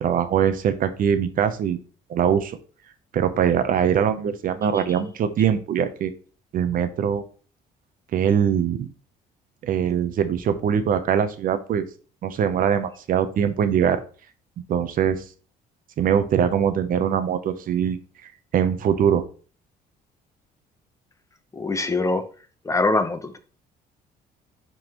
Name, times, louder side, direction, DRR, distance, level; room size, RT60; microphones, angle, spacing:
voice 1, 0.0-1.8 2.1-2.6 3.1-6.1 6.5-7.2 8.1-8.9 9.6-11.8 12.2-14.0 14.7-15.2 16.0-18.0 18.5-19.2, right 8 dB, 55° right, 10 dB, 0.8 m, -22 dB
voice 2, 21.5-22.2 22.6-23.4, left 3 dB, 20° left, 8 dB, 1.0 m, -23 dB
10.0 x 3.9 x 3.0 m, 0.39 s
cardioid pair, 110°, 17 cm